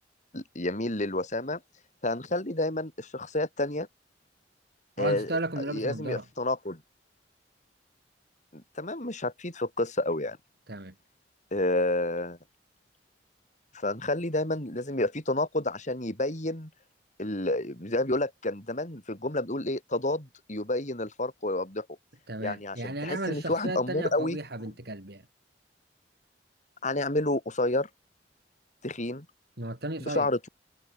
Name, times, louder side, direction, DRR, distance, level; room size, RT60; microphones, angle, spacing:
voice 1, 0.3-1.6 2.0-3.9 5.0-6.8 8.5-10.4 11.5-12.4 13.7-16.7 17.2-21.9 22.4-24.4 26.8-27.9 28.8-29.3 30.0-30.5, left 2 dB, 45° left, 5.5 m, -30 dB
voice 2, 5.0-6.3 10.7-10.9 22.3-25.3 29.6-30.3, right 2 dB, 60° right, 5.6 m, -34 dB
head